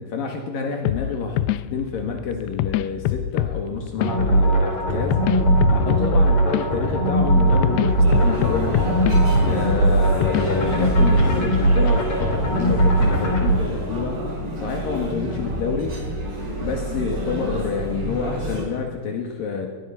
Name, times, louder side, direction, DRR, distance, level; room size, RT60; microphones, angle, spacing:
voice 1, 0.0-5.2 5.7-8.7 9.4-14.3 14.6-16.1 16.6-19.7, left 5 dB, 60° left, 3 dB, 3.2 m, -28 dB
sound 1, 0.8-10.9, left 13 dB, 80° left, 2.6 m, -27 dB
sound 2, 4.0-13.5, right 1 dB, 40° left, 4.6 m, -19 dB
sound 3, 8.0-18.6, equal, 65° right, 9.7 m, -29 dB
21.5 x 21.5 x 5.8 m, 1.4 s
omnidirectional pair, 4.9 m